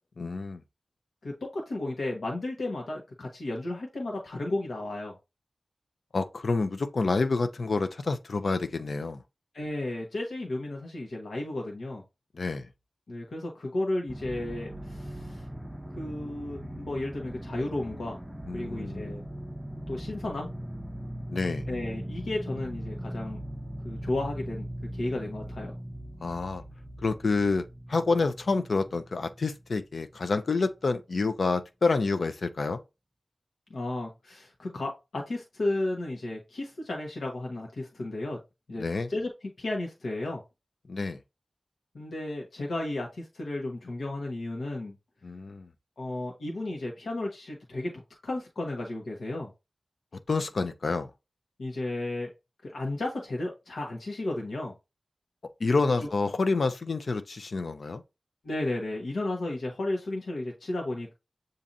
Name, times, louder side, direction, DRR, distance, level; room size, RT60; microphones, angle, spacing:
voice 1, 0.2-0.6 6.1-9.2 12.3-12.7 18.5-19.1 21.3-21.6 26.2-26.6 27.0-32.8 38.8-39.1 40.9-41.2 45.2-45.7 50.3-51.1 55.6-58.0, left 3 dB, 70° left, 0.5 m, -28 dB
voice 2, 1.2-5.2 9.5-12.0 13.1-15.5 15.9-18.2 18.5-19.2 19.9-20.5 21.7-23.4 23.8-25.8 33.7-38.4 38.7-40.4 41.9-44.9 46.0-49.5 51.6-52.3 52.6-54.7 55.7-55.8 58.4-61.1, left 2 dB, 85° left, 1.0 m, -33 dB
sound 1, 14.1-29.7 30.2-30.3, equal, 10° right, 0.5 m, -39 dB
7.2 x 2.6 x 2.6 m
cardioid pair, 50°, 0 cm